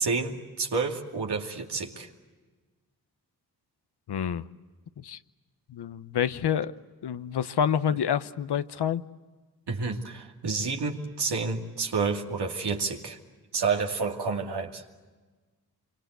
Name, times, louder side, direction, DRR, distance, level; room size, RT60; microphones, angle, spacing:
voice 1, 0.0-2.1 9.7-13.2 13.5-14.8, right 4 dB, 80° right, 1 dB, 2.6 m, -29 dB
voice 2, 4.1-4.5 5.0-5.2 5.7-6.7 7.0-9.0, left 8 dB, 80° left, 13 dB, 0.9 m, -28 dB
27.5 x 24.5 x 8.1 m, 1.3 s
cardioid pair, 40°, 39 cm